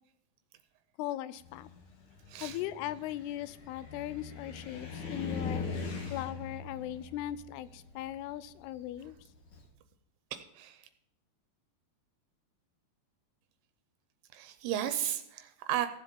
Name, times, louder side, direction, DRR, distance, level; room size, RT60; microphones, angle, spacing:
voice 1, 1.0-1.7 2.4-5.7 6.1-9.2, left 13 dB, 85° left, 16 dB, 2.6 m, -38 dB
Car, 1.4-9.7, left 4 dB, 60° left, 1.4 m, -41 dB
voice 2, 2.3-2.6 5.9-6.2 10.3-10.9 14.3-15.9, right 11 dB, 85° right, 9 dB, 2.7 m, -35 dB
15.0 x 7.3 x 5.3 m, 0.81 s
omnidirectional pair, 4.6 m